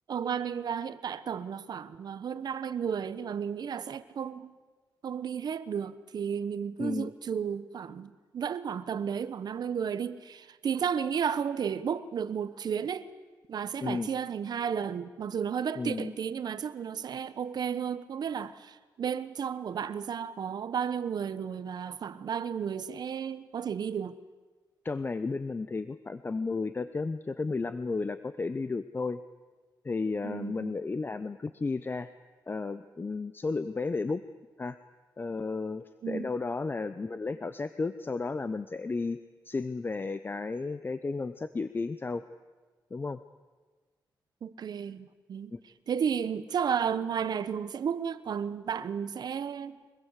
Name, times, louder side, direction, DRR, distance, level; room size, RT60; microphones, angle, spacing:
voice 1, 0.1-4.5 5.0-13.1 13.5-24.1 30.2-30.7 36.0-36.3 44.4-45.5 45.9-49.8, right 7 dB, 65° right, 1.1 m, -33 dB
voice 2, 6.8-7.1 13.8-14.1 15.8-16.2 24.8-29.2 29.8-32.1 32.5-34.2 34.6-34.8 35.2-39.2 39.4-42.2 42.9-43.2 45.5-45.6, left 3 dB, 30° left, 0.8 m, -33 dB
24.5 x 20.5 x 8.3 m
cardioid pair, 100°, 8 cm